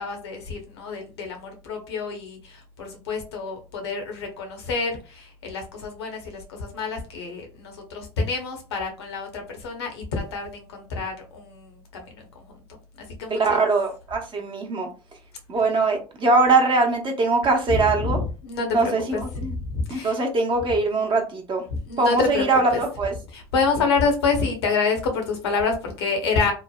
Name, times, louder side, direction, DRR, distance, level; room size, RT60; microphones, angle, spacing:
voice 1, 0.0-12.4 13.2-13.6 17.7-19.2 19.5-20.2 21.7-22.8 23.3-26.5, left 4 dB, 75° left, 3 dB, 0.8 m, -27 dB
voice 2, 13.3-14.9 15.5-18.2 18.7-19.5 19.9-21.6 22.0-23.1, right 3 dB, 35° right, 2 dB, 0.8 m, -22 dB
3.1 x 2.0 x 2.2 m, 0.34 s
hypercardioid pair, 70°, 14 cm